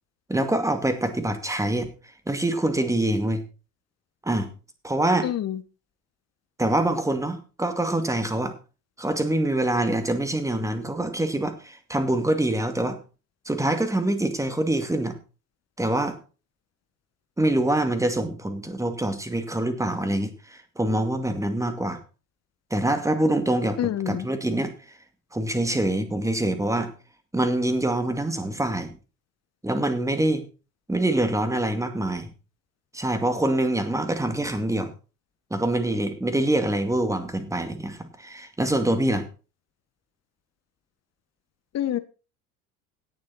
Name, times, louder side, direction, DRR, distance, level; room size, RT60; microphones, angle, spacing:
voice 1, 0.3-1.9 2.3-3.4 4.2-4.5 4.8-5.3 6.6-8.5 9.0-13.0 13.5-15.2 15.8-16.2 17.4-22.0 22.7-24.7 25.3-26.9 27.3-28.9 29.6-30.4 30.9-32.3 32.9-34.9 35.5-39.3, right 1 dB, 5° right, 8 dB, 2.3 m, -25 dB
voice 2, 5.2-5.6 23.8-24.3 41.7-42.0, left 11 dB, 35° left, 12 dB, 1.3 m, -26 dB
17.0 x 7.2 x 4.2 m, 0.34 s
figure-of-eight pair, 65°, 45 cm